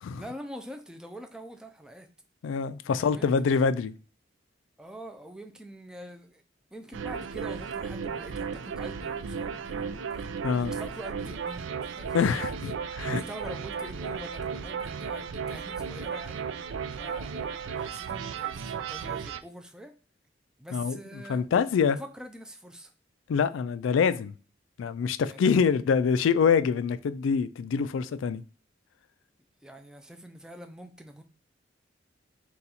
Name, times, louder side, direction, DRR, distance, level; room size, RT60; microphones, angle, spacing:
voice 1, 0.1-2.1 2.8-3.3 4.8-6.4 6.7-9.9 10.6-12.5 13.1-19.9 20.6-21.4 21.9-22.9 25.2-25.8 29.6-31.2, right 1 dB, 5° right, 0.4 m, -45 dB
voice 2, 2.4-3.9 10.4-10.7 12.1-13.2 20.7-21.0 21.3-22.0 23.3-24.3 24.8-28.4, left 6 dB, 90° left, 0.3 m, -25 dB
sound 1, 6.9-19.4, right 6 dB, 90° right, 0.4 m, -35 dB
3.9 x 2.3 x 4.1 m
head